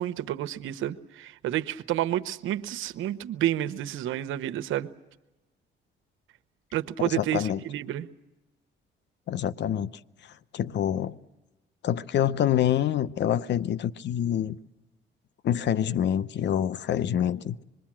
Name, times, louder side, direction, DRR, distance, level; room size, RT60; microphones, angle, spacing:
voice 1, 0.0-4.9 6.7-8.1, right 12 dB, 85° right, 0.9 m, -30 dB
voice 2, 7.0-7.6 9.3-9.9 10.2-11.2 11.8-14.6 15.4-17.6, left 10 dB, 65° left, 0.8 m, -26 dB
26.0 x 22.0 x 7.4 m
cardioid pair, 90°, 20 cm